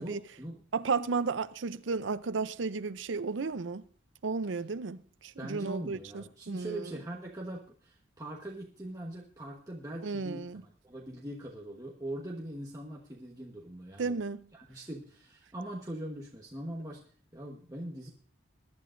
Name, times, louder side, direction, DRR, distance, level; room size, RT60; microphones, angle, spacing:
voice 1, 0.0-0.6 5.4-14.1 14.5-17.0 17.3-18.1, right 1 dB, 20° right, 1.2 m, -41 dB
voice 2, 0.7-3.8 4.2-5.0 5.4-6.9 10.0-10.6 14.0-14.4, right 4 dB, 90° right, 0.6 m, -33 dB
22.0 x 11.5 x 2.6 m
head